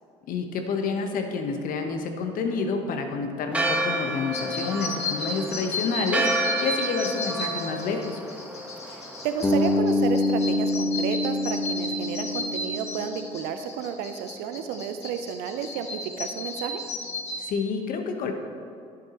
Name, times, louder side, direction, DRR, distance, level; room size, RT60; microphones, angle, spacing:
voice 1, 0.3-8.2 17.4-18.3, left 4 dB, 60° left, 5 dB, 1.1 m, -29 dB
Church bell, 3.5-9.8, right 1 dB, 10° right, 1.3 m, -30 dB
sound 1, 4.3-17.5, left 2 dB, 40° left, 2.1 m, -34 dB
voice 2, 8.9-16.8, right 7 dB, 75° right, 8 dB, 0.5 m, -32 dB
Bass guitar, 9.4-13.5, left 2 dB, 15° left, 1.2 m, -26 dB
11.0 x 7.8 x 3.0 m, 2.4 s
hypercardioid pair, 60°, 16 cm